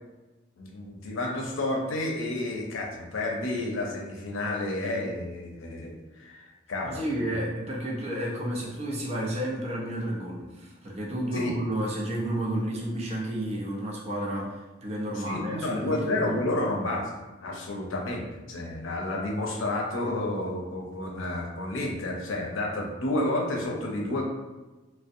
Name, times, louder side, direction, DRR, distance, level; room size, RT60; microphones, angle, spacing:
voice 1, 0.6-7.0 7.3-7.4 11.3-11.6 15.3-17.1 17.4-24.2, left 2 dB, 85° left, 0 dB, 0.5 m, -30 dB
voice 2, 6.8-14.6 14.8-16.4, right 1 dB, 30° right, -3 dB, 0.5 m, -31 dB
2.6 x 2.1 x 2.5 m, 1.2 s
head